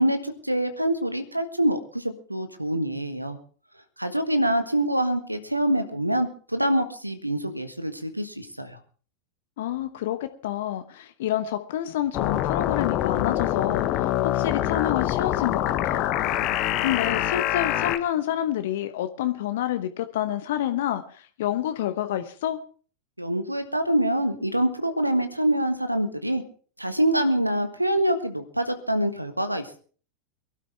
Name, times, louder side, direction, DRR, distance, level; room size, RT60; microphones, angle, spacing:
voice 1, 0.0-3.4 4.0-8.8 23.2-26.4 26.8-29.8, right 1 dB, 85° right, 9 dB, 1.4 m, -25 dB
voice 2, 9.6-16.0 16.8-22.6, left 12 dB, 55° left, 9 dB, 1.0 m, -28 dB
sound 1, 12.1-18.0, left 13 dB, 40° left, 1.3 m, -25 dB
23.5 x 12.5 x 3.4 m, 0.41 s
figure-of-eight pair, 90°, 0 cm